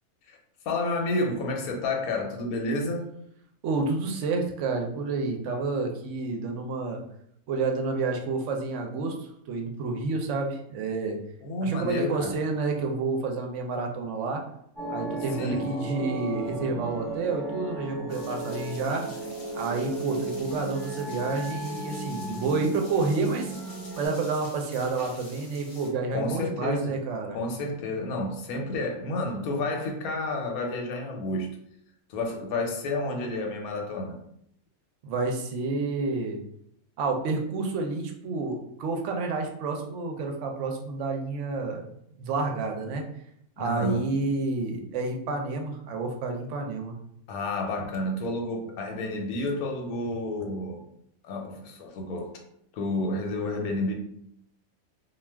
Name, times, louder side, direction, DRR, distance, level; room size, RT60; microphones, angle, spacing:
voice 1, 0.7-3.1 11.4-12.3 15.4-15.7 26.1-27.0 27.3-31.5 32.1-34.2 43.6-44.1 47.3-50.8 51.2-52.3 52.7-53.9, left 2 dB, 90° left, 2 dB, 1.1 m, -30 dB
voice 2, 3.6-7.0 7.5-11.2 11.6-14.4 14.9-19.0 19.5-23.5 24.0-27.4 35.0-36.4 37.0-41.9 42.2-43.1 43.6-46.9, right 3 dB, 70° right, 3 dB, 0.8 m, -29 dB
sound 1, 14.8-24.1, right 2 dB, 20° right, 1.0 m, -35 dB
sound 2, 18.1-25.9, left 2 dB, 50° left, 0.8 m, -48 dB
2.4 x 2.3 x 3.2 m, 0.73 s
omnidirectional pair, 1.5 m